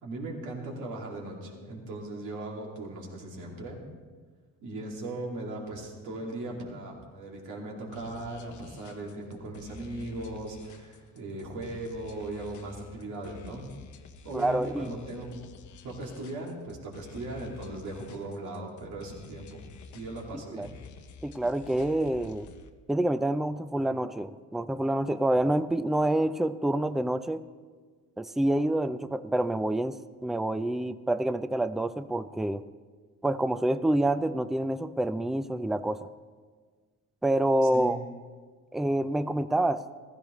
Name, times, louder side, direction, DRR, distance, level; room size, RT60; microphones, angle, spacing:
voice 1, 0.0-3.8 4.6-13.7 14.2-15.3 15.8-19.6 19.9-20.7 37.6-38.0, right 2 dB, 80° right, -1 dB, 2.4 m, -38 dB
sound 1, 7.9-22.7, left 5 dB, 70° left, 0.9 m, -50 dB
voice 2, 14.3-14.9 20.5-20.7 21.2-22.5 22.9-27.4 28.2-32.6 33.2-36.1 37.2-38.0 38.7-39.8, right 1 dB, ahead, 13 dB, 0.4 m, -27 dB
15.0 x 14.0 x 3.1 m, 1.5 s
cardioid pair, 90°, 30 cm